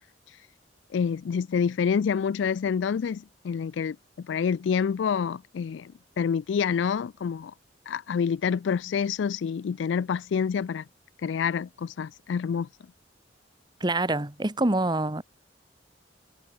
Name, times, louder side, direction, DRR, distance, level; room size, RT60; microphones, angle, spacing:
voice 1, 0.9-7.5 7.9-10.8 11.2-12.7, left 6 dB, 75° left, 0.3 m, -27 dB
voice 2, 13.8-15.2, right 2 dB, 25° right, 1.3 m, -26 dB
head